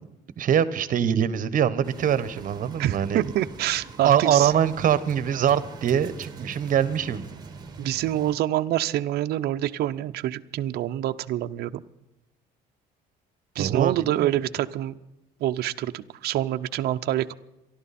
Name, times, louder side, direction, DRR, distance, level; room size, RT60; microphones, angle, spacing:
voice 1, 0.4-3.3 4.0-7.2 13.5-14.3, right 9 dB, 55° right, 15 dB, 1.2 m, -23 dB
sound 1, 1.8-8.4, right 4 dB, 25° right, 1.9 m, -43 dB
voice 2, 2.8-4.5 7.8-11.8 13.6-15.0 15.4-17.3, right 13 dB, 70° right, 9 dB, 0.7 m, -26 dB
28.0 x 12.0 x 4.3 m, 0.93 s
cardioid pair, 110°, 17 cm